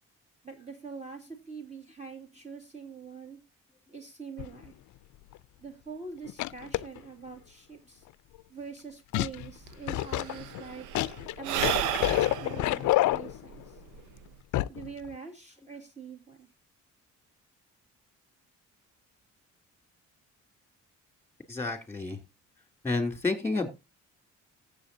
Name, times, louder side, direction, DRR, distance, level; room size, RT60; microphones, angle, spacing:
voice 1, 0.4-3.4 3.9-4.8 5.6-8.0 8.5-10.9 11.4-13.8 14.7-16.5, right 5 dB, 20° right, 2 dB, 2.3 m, -44 dB
sound 1, 4.4-4.7 5.3-5.4 6.3-7.0 9.1-9.5 9.9-13.7 14.5-14.9 15.1-15.2, left 16 dB, 75° left, 0.5 m, -28 dB
Sigh / Breathing, 9.4-9.5 9.7-14.4, right 11 dB, 90° right, 0.6 m, -33 dB
voice 2, 21.5-22.2 22.8-23.7, left 3 dB, 10° left, 6 dB, 3.0 m, -30 dB
14.0 x 7.6 x 2.7 m, 0.26 s
cardioid pair, 90°, 30 cm